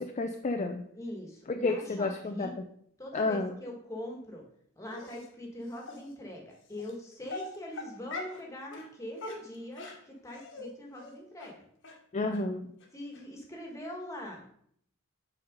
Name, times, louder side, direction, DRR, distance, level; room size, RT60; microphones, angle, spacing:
voice 1, 0.2-0.8 1.6-2.5 3.1-3.5 12.1-12.7, left 3 dB, 35° left, 5 dB, 0.5 m, -30 dB
voice 2, 0.9-2.6 3.0-4.4 4.8-11.6 12.9-14.5, left 1 dB, 15° left, 0 dB, 1.6 m, -42 dB
Dog, 4.9-5.3 5.9-6.0 6.8-6.9 7.3-8.4 8.7-8.9 9.2-10.7 11.0-11.1 11.4-11.5 11.8-12.0 12.3-12.4 12.8-12.9 13.1-13.2, left 3 dB, 60° left, 1.3 m, -42 dB
6.7 x 4.2 x 5.2 m, 0.65 s
head